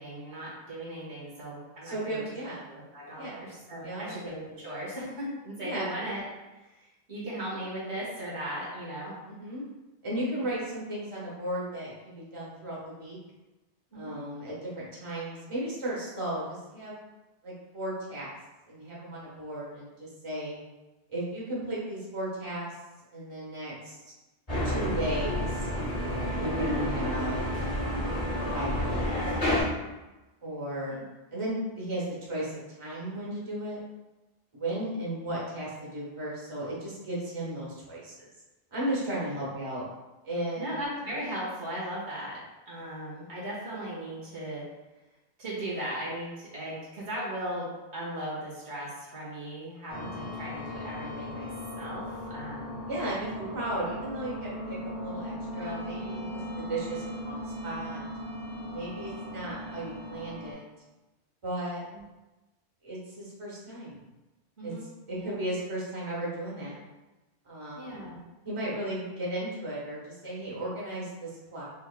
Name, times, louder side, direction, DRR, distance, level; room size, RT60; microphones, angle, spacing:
voice 1, 0.0-2.2 2.7-6.2 6.6-9.1 10.4-10.5 13.9-14.1 30.9-31.0 40.6-42.4 42.6-44.6 45.4-47.7 47.9-51.5 51.7-52.8 53.4-53.6 56.0-56.2 61.9-62.0 64.6-64.8 65.1-65.4 67.7-68.2, right 1 dB, 85° right, -6 dB, 1.8 m, -37 dB
voice 2, 1.8-2.6 3.2-3.5 3.8-4.1 5.6-5.9 9.2-9.6 10.0-13.2 13.9-17.0 17.4-18.3 18.7-20.6 21.1-22.7 23.1-24.1 24.6-25.7 26.4-27.5 28.5-29.3 30.4-31.0 31.3-33.8 34.5-38.3 38.7-39.9 40.2-40.8 50.0-50.4 52.9-56.4 56.7-58.0 58.7-60.6 61.4-61.9 62.8-64.0 64.6-64.7 65.1-66.8 67.4-68.1 68.4-71.6, right 1 dB, 30° right, -6 dB, 1.2 m, -35 dB
sound 1, 24.5-29.6, equal, 35° left, 1.6 m, -29 dB
sound 2, 49.9-60.5, left 1 dB, 60° right, 1.3 m, -38 dB
5.3 x 3.5 x 2.2 m, 1.1 s
omnidirectional pair, 1.1 m